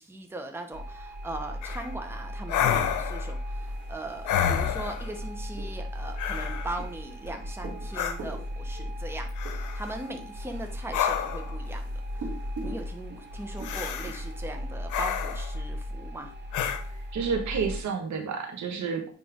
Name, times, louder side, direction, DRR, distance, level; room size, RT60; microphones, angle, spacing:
voice 1, 0.0-12.4 12.6-16.3, right 2 dB, 10° right, 4 dB, 1.0 m, -39 dB
creepy alarm, 0.7-17.8, left 1 dB, 35° right, 1.7 m, -36 dB
sound 1, 1.6-1.9 2.5-3.3 4.3-5.1 6.2-6.8 7.9-8.2 9.4-9.9 10.9-11.6 13.6-14.2 14.9-15.6 16.5-16.8, left 9 dB, 80° left, 0.8 m, -29 dB
sound 2, 3.4-14.7, right 3 dB, 90° right, 2.4 m, -46 dB
voice 2, 17.1-19.1, right 5 dB, 65° right, 4 dB, 1.5 m, -30 dB
9.2 x 3.3 x 3.6 m, 0.41 s
cardioid pair, 90°, 30 cm